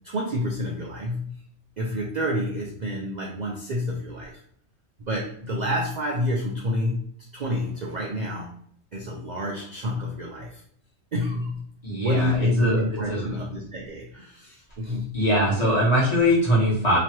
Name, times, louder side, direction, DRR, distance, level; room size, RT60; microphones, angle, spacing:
voice 1, 0.0-1.3 1.8-4.3 5.0-7.1 7.3-8.5 8.9-10.6 11.1-11.6 11.9-15.2, left 1 dB, 50° right, -2 dB, 0.6 m, -28 dB
voice 2, 11.8-12.8 13.1-13.4 15.1-17.0, equal, 30° left, -6 dB, 1.5 m, -22 dB
3.0 x 2.9 x 4.5 m, 0.62 s
omnidirectional pair, 1.3 m